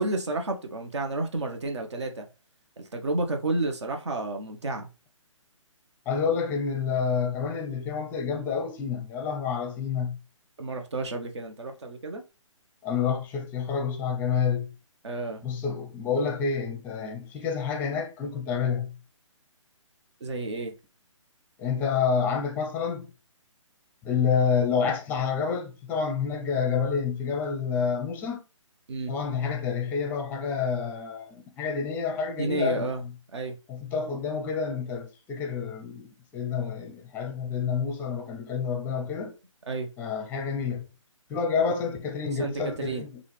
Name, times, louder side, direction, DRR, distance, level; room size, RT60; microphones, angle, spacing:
voice 1, 0.0-2.3 2.8-4.9 10.6-12.2 15.0-15.4 20.2-20.7 28.9-29.1 32.4-33.0 33.3-33.6 39.7-39.9 42.3-43.0, right 2 dB, 60° right, 1.1 m, -31 dB
voice 2, 6.1-10.2 12.8-14.7 15.4-18.9 21.6-23.1 24.0-28.4 29.1-33.1 33.7-39.3 40.0-40.9 41.3-43.2, left 6 dB, 10° left, 0.6 m, -28 dB
5.3 x 2.5 x 3.3 m
figure-of-eight pair, 140°, 17 cm